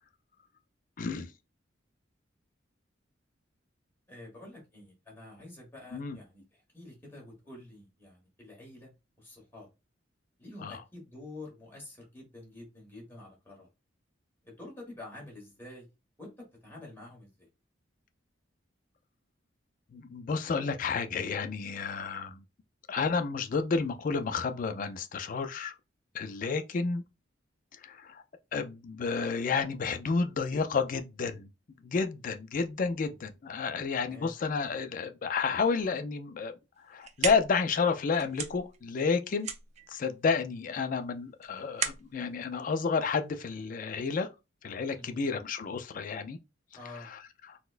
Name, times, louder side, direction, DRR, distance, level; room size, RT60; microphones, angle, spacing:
voice 1, 1.0-1.3 5.9-6.2 10.6-10.8 19.9-22.4 22.9-25.8 26.1-27.0 27.8-28.2 28.5-31.5 31.8-36.5 36.9-39.5 39.9-44.3 44.6-46.4 46.9-47.2 47.5-47.6, left 5 dB, 45° left, 0.3 m, -31 dB
voice 2, 4.1-8.9 9.2-9.7 10.4-13.7 14.4-15.9 16.2-17.5 34.0-34.3 44.9-45.2 46.8-47.1, left 2 dB, 10° left, 1.4 m, -48 dB
sound 1, 36.8-43.6, right 7 dB, 35° right, 0.4 m, -39 dB
4.0 x 2.1 x 2.4 m
head